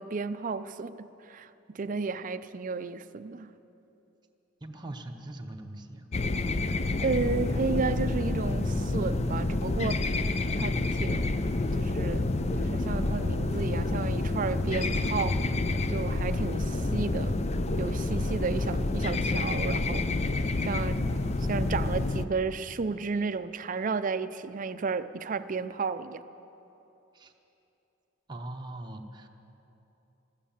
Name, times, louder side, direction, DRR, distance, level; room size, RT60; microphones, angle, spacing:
voice 1, 0.0-3.5 7.0-10.1 10.6-11.3 11.7-15.4 15.9-17.4 17.8-20.1 20.6-26.2, right 4 dB, 40° right, 12 dB, 0.5 m, -33 dB
voice 2, 4.6-6.1 27.1-27.3 28.3-29.3, right 1 dB, 20° right, 2 dB, 0.8 m, -41 dB
sound 1, 6.1-22.2, left 2 dB, 35° left, 0.5 m, -28 dB
sound 2, 13.5-14.0 14.3-15.1 15.3-17.8, equal, 55° left, 2.5 m, -44 dB
14.5 x 13.5 x 7.2 m, 3.0 s
head